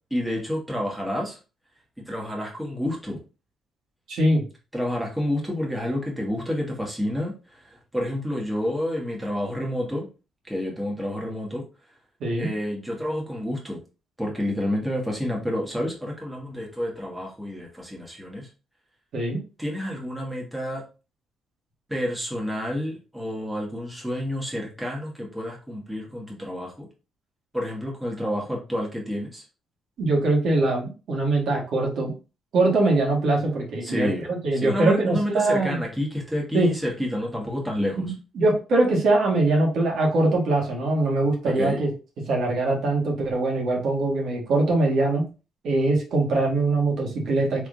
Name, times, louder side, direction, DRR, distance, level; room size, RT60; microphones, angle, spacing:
voice 1, 0.1-1.4 2.0-3.2 4.7-10.1 10.5-11.7 12.4-13.8 14.2-18.5 19.6-20.9 21.9-26.9 27.5-29.4 33.8-34.2 34.6-38.1 41.4-41.8, left 1 dB, 10° right, -1 dB, 1.4 m, -29 dB
voice 2, 4.1-4.4 12.2-12.5 19.1-19.4 30.0-32.1 32.5-35.8 36.5-36.7 38.0-41.9 42.3-45.2 45.6-47.7, right 2 dB, 70° right, -1 dB, 1.4 m, -22 dB
3.3 x 3.3 x 2.5 m, 0.32 s
cardioid pair, 75°, 0 cm